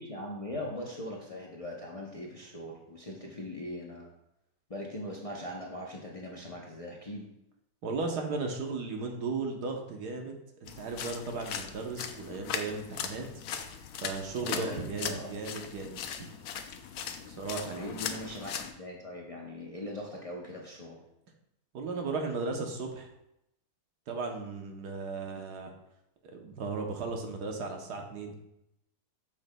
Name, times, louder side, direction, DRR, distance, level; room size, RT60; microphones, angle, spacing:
voice 1, 0.0-4.1 4.7-7.3 14.4-15.3 17.7-21.0, left 1 dB, 35° left, -2 dB, 0.6 m, -40 dB
voice 2, 7.8-13.2 14.0-16.2 17.3-18.0 21.7-23.1 24.1-25.7 26.2-28.4, right 3 dB, 80° right, 3 dB, 1.5 m, -36 dB
sound 1, 10.7-18.7, left 7 dB, 75° left, 1.1 m, -39 dB
8.5 x 6.3 x 2.2 m, 0.84 s
omnidirectional pair, 1.7 m